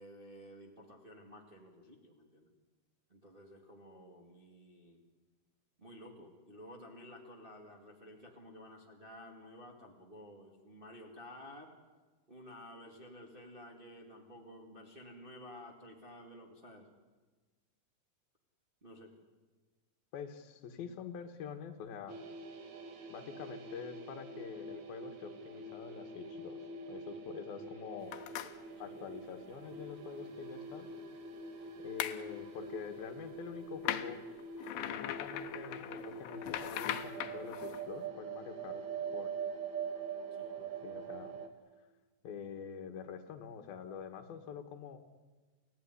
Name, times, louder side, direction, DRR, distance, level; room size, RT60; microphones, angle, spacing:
voice 1, 0.0-2.5 3.1-5.0 5.8-11.8 12.3-16.9 18.8-19.1 28.8-29.0 40.3-40.6, equal, 15° right, 1 dB, 1.9 m, -53 dB
voice 2, 20.1-22.2 23.1-28.1 28.8-30.9 31.8-34.2 34.8-38.8 39.1-39.3 40.6-41.4 42.2-45.0, left 7 dB, 70° left, 7 dB, 3.3 m, -46 dB
sound 1, 22.1-41.5, right 5 dB, 50° right, 3.1 m, -44 dB
sound 2, 28.1-28.5 32.0-32.2 33.8-37.8, left 12 dB, 85° left, 3.2 m, -39 dB
29.0 x 16.0 x 9.8 m, 1.3 s
omnidirectional pair, 4.6 m